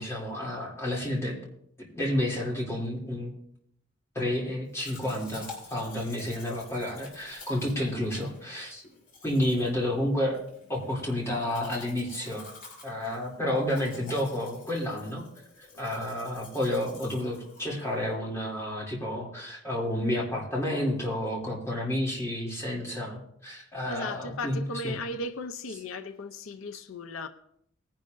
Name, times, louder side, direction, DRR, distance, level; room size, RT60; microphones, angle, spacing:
voice 1, 0.0-1.4 1.8-3.3 4.1-5.4 5.7-8.8 9.2-10.4 10.7-12.4 12.8-15.2 15.8-24.9, left 1 dB, 15° left, 2.9 m, -30 dB
Domestic sounds home sounds, 4.7-18.1, left 3 dB, 40° left, 3.6 m, -49 dB
voice 2, 23.8-27.3, left 2 dB, 85° left, 0.6 m, -36 dB
19.5 x 10.5 x 2.6 m
head